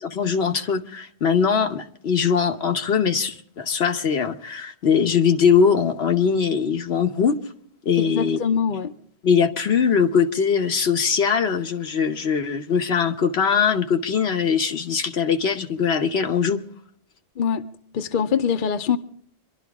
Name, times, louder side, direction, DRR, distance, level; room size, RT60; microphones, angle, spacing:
voice 1, 0.0-7.4 7.8-8.4 9.2-16.6, left 6 dB, 80° left, 1.3 m, -21 dB
voice 2, 8.0-8.9 17.4-17.6 17.9-19.0, left 7 dB, 55° left, 0.9 m, -23 dB
26.5 x 12.0 x 3.5 m
omnidirectional pair, 1.1 m